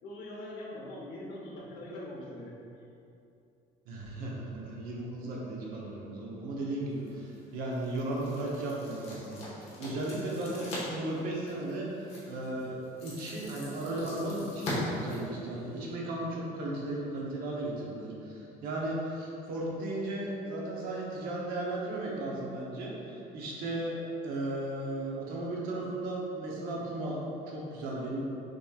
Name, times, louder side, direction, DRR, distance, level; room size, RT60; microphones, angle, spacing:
voice 1, 0.0-2.6 12.5-12.6, left 1 dB, 65° left, -4 dB, 1.0 m, -42 dB
voice 2, 3.9-24.0 24.2-28.2, right 1 dB, 65° right, -3 dB, 0.9 m, -35 dB
sound 1, 6.9-15.9, left 2 dB, 40° left, 1.2 m, -43 dB
6.2 x 3.1 x 2.4 m, 2.7 s
cardioid pair, 175°, 16 cm